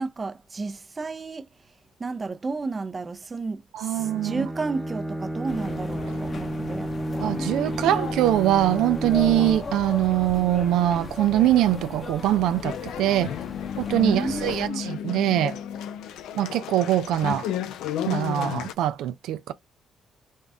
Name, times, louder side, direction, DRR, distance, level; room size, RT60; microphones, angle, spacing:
voice 1, 0.0-1.5 2.0-6.9 14.0-14.8, right 3 dB, 30° right, 0.6 m, -32 dB
voice 2, 3.7-4.5 7.2-13.3 13.8-15.6 16.3-17.5 18.0-19.5, right 13 dB, 90° right, 0.4 m, -23 dB
Bowed string instrument, 3.9-9.9, right 1 dB, ahead, 0.9 m, -32 dB
sound 1, 5.5-14.7, left 4 dB, 45° left, 0.9 m, -36 dB
sound 2, 12.6-18.7, left 9 dB, 90° left, 0.5 m, -32 dB
5.3 x 2.4 x 3.4 m
cardioid pair, 90°, 0 cm